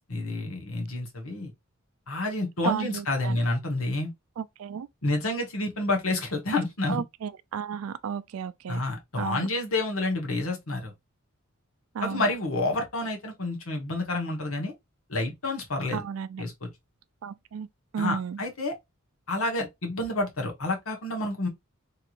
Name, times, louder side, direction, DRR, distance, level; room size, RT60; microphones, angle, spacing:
voice 1, 0.1-1.5 2.1-4.1 5.0-7.0 8.7-10.9 12.0-14.7 15.1-16.0 16.4-16.7 18.0-18.7 19.3-21.5, left 2 dB, 75° left, 1.2 m, -29 dB
voice 2, 2.6-3.4 4.4-4.9 6.9-8.8 9.2-9.5 11.9-12.3 15.9-16.4 17.2-17.7 17.9-18.4, right 7 dB, 75° right, 0.4 m, -33 dB
3.4 x 3.0 x 2.4 m
head